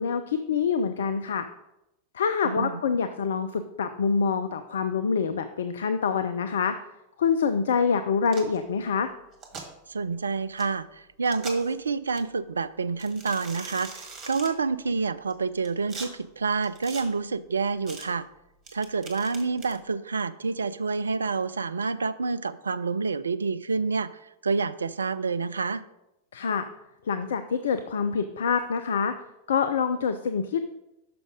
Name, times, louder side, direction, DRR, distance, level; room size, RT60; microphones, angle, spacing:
voice 1, 0.0-1.5 2.1-6.7 7.2-9.1 26.3-26.7 27.0-29.1 29.5-30.6, left 6 dB, 65° left, 9 dB, 0.4 m, -26 dB
voice 2, 2.4-2.8 9.9-18.3 18.7-25.8, right 4 dB, 75° right, 15 dB, 0.3 m, -28 dB
sound 1, 8.3-8.6 9.3-9.7 10.6-10.7 11.2-11.7 12.2-12.3 13.0-14.5 15.3-16.1 16.6-17.0 17.9-18.1 18.7-19.8, right 4 dB, 30° right, 1.7 m, -41 dB
6.2 x 6.0 x 5.0 m, 0.90 s
figure-of-eight pair, 90°, 0 cm